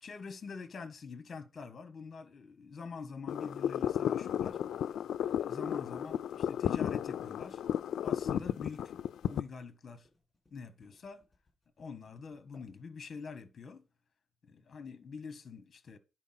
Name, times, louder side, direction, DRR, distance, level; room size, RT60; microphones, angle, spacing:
voice 1, 0.0-5.0 5.2-7.6 8.0-10.1 10.5-11.2 11.8-13.8 14.4-16.0, left 5 dB, 35° left, 1.1 m, -45 dB
sound 1, 2.3-13.3, left 1 dB, 15° left, 5.2 m, -69 dB
sound 2, 3.3-9.4, left 10 dB, 75° left, 0.3 m, -33 dB
10.5 x 4.5 x 5.7 m
wide cardioid pair, 170°, 0 cm